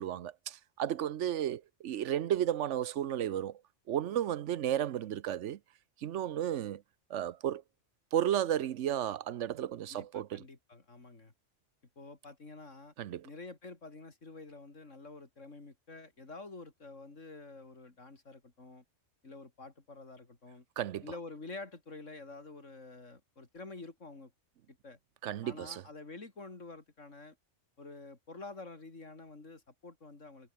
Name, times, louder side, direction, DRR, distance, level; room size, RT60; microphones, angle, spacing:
voice 1, 0.0-3.6 3.9-5.6 6.0-6.8 7.1-7.6 8.1-10.4 13.0-13.3 20.8-21.0 25.2-25.8, right 11 dB, 75° right, 1.0 m, -33 dB
voice 2, 9.9-11.3 12.0-12.9 13.2-18.8 19.2-20.7 21.0-24.3 24.7-25.0 25.4-27.4 27.8-30.5, left 3 dB, 85° left, 3.9 m, -48 dB
omnidirectional pair, 1.3 m